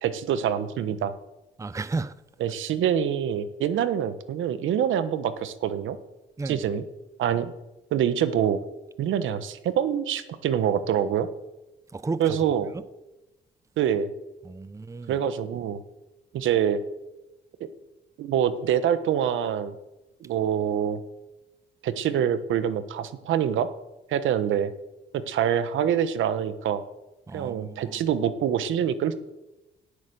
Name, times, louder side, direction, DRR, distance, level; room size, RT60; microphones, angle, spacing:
voice 1, 0.0-1.1 2.4-6.0 6.4-6.8 7.2-7.5 7.9-8.6 9.0-11.3 12.2-12.7 13.8-14.1 15.1-15.8 16.3-16.8 18.2-19.7 20.2-21.0 21.8-23.7 24.1-24.7 25.1-26.8 27.3-29.1, right 9 dB, 80° right, 1.2 m, -25 dB
voice 2, 1.6-2.1 6.4-6.6 11.9-12.4 14.5-15.1 27.3-28.0, right 3 dB, 15° right, 0.6 m, -33 dB
17.5 x 8.4 x 6.9 m
cardioid pair, 90°, 20 cm